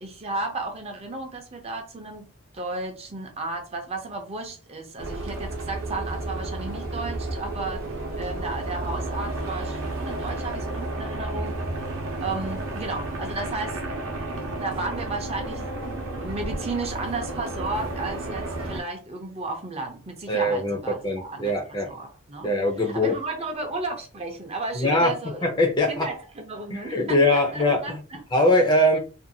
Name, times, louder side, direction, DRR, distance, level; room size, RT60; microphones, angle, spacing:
voice 1, 0.0-2.3 2.5-7.8 8.1-11.6 12.2-13.8 14.2-22.5 22.9-25.4 25.9-28.2, right 3 dB, 30° right, 0.5 m, -33 dB
sound 1, 5.0-18.8, right 2 dB, 75° right, 0.7 m, -32 dB
voice 2, 20.3-21.9 22.4-23.1 24.8-25.1 25.4-26.1 26.7-28.0 28.3-29.0, left 1 dB, 20° left, 0.5 m, -22 dB
2.6 x 2.3 x 2.6 m
head